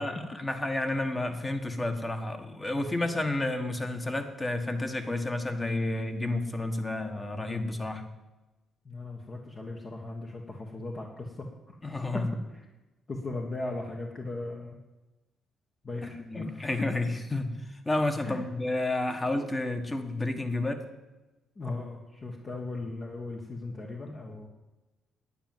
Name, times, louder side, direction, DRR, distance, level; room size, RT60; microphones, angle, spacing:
voice 1, 0.0-8.0 11.8-12.3 16.0-17.5 17.8-20.8, left 2 dB, 20° left, 6 dB, 1.6 m, -31 dB
voice 2, 8.8-11.8 12.1-12.2 12.5-12.6 13.1-14.8 15.8-16.9 18.2-18.4 21.5-24.5, left 2 dB, 35° left, -1 dB, 1.7 m, -38 dB
10.5 x 9.3 x 7.5 m, 1.1 s
cardioid pair, 90°, 0 cm